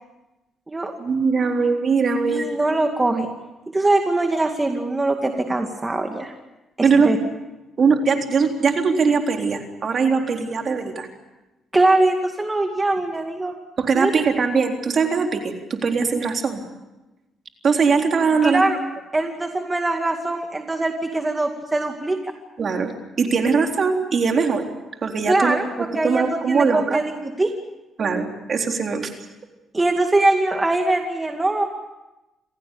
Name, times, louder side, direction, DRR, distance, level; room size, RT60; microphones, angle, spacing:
voice 1, 1.0-2.5 6.8-7.2 7.8-11.1 13.8-16.6 17.6-18.7 22.6-22.9 23.2-24.7 25.0-27.0 28.0-29.1, right 5 dB, 50° right, 3 dB, 3.9 m, -21 dB
voice 2, 2.3-3.3 3.7-6.3 6.8-7.2 11.7-13.5 14.0-14.1 18.4-18.8 19.1-22.3 25.3-27.5 29.7-31.7, right 2 dB, 20° right, 4 dB, 2.3 m, -22 dB
27.5 x 17.0 x 8.5 m, 1.0 s
cardioid pair, 90°, 0 cm